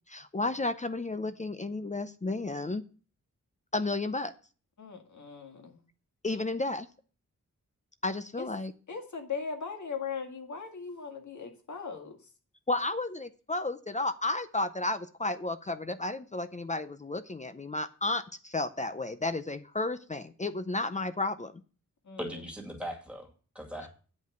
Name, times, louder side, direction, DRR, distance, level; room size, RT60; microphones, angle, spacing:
voice 1, 0.1-2.8 3.7-4.3 6.2-6.9 8.0-8.7 12.7-21.5, left 2 dB, 25° left, 11 dB, 0.5 m, -32 dB
voice 2, 4.8-5.8 8.4-8.5 8.9-12.2 22.1-22.2, left 5 dB, 65° left, 4 dB, 1.9 m, -39 dB
voice 3, 22.2-23.9, equal, 5° right, 1 dB, 2.2 m, -39 dB
9.3 x 5.3 x 7.9 m, 0.38 s
wide cardioid pair, 170°, 31 cm